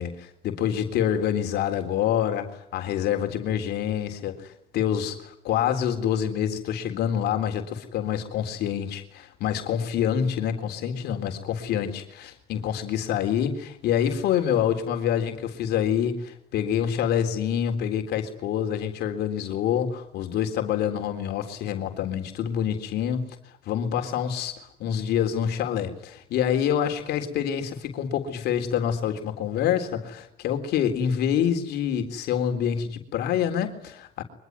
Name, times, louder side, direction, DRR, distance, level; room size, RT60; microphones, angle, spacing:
voice 1, 0.0-23.4 23.7-34.2, left 9 dB, 75° left, 5 dB, 3.8 m, -26 dB
24.5 x 22.0 x 9.5 m, 0.73 s
cardioid pair, 110°, 17 cm